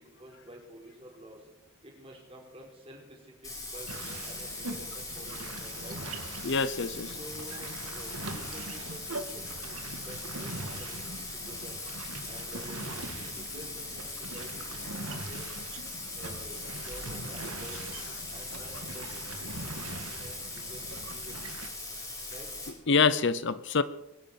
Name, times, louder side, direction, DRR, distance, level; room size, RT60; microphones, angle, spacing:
voice 1, 0.0-1.4 1.8-6.0 7.2-9.8 10.1-11.7 12.3-15.5 16.2-16.6 16.9-18.0 18.3-21.4 22.3-22.5, right 1 dB, 25° right, -1 dB, 4.7 m, -49 dB
Bathtub (filling or washing), 3.4-22.7, left 2 dB, 15° left, 4.3 m, -40 dB
sound 1, 3.9-21.7, right 2 dB, 80° right, 2.0 m, -42 dB
voice 2, 6.4-7.2 22.9-23.8, left 5 dB, 55° left, 15 dB, 0.7 m, -25 dB
sound 2, 6.6-6.9 7.3-7.7 8.1-8.7 9.1-9.7 10.2-11.2 11.6-12.4 12.8-13.1 13.3-19.0, left 8 dB, 85° left, 4.2 m, -50 dB
22.5 x 11.0 x 5.9 m, 0.85 s
head